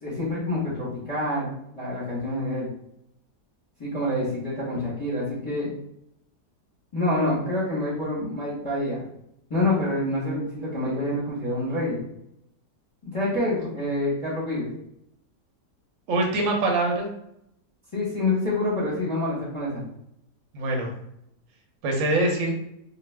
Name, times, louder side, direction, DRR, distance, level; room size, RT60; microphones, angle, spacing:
voice 1, 0.0-2.7 3.8-5.7 6.9-9.1 9.5-12.0 13.1-14.7 17.9-19.9, left 1 dB, 25° left, -9 dB, 0.8 m, -27 dB
voice 2, 16.1-17.1 20.5-20.9 21.8-22.5, right 2 dB, 60° right, 1 dB, 0.9 m, -23 dB
2.5 x 2.4 x 3.2 m, 0.78 s
omnidirectional pair, 1.8 m